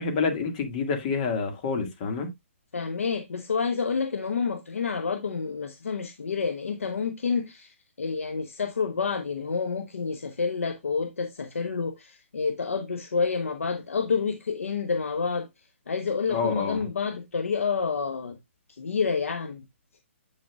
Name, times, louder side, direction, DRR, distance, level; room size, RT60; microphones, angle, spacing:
voice 1, 0.0-2.3 16.3-16.8, left 5 dB, 35° left, 2.1 m, -28 dB
voice 2, 2.7-18.4 18.7-19.7, left 5 dB, 85° left, 1.0 m, -29 dB
8.3 x 6.5 x 2.4 m
hypercardioid pair, 155°, 7 cm